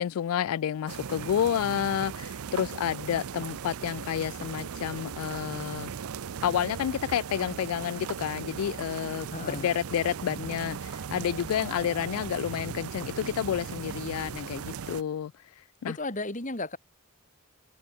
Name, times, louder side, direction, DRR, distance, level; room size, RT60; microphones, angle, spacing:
voice 1, 0.0-5.9 6.4-16.0, left 9 dB, 80° left, 0.3 m, -30 dB
sound 1, 0.9-15.0, right 7 dB, 80° right, 0.5 m, -38 dB
voice 2, 9.3-9.7 15.9-16.8, left 2 dB, 35° left, 3.3 m, -34 dB
head